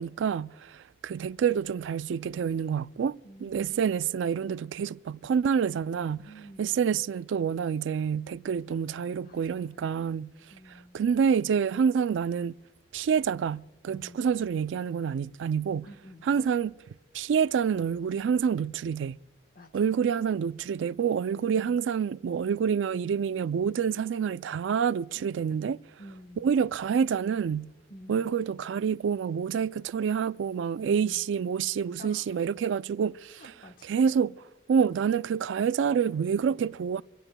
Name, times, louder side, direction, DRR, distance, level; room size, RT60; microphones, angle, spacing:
voice 1, 0.0-6.3 6.6-10.3 10.7-12.5 12.9-15.9 16.2-16.7 17.1-19.2 19.7-25.8 26.4-27.7 28.1-33.4 33.8-34.4 34.7-37.0, right 7 dB, 85° right, 0.3 m, -27 dB
voice 2, 3.2-4.0 6.2-6.8 9.2-10.1 10.5-11.0 13.9-14.3 15.8-16.4 19.5-19.7 21.4-21.8 26.0-26.5 27.9-28.4 30.8-31.3 32.0-32.4 33.4-33.9, equal, 50° left, 1.2 m, -50 dB
24.5 x 17.5 x 2.2 m
head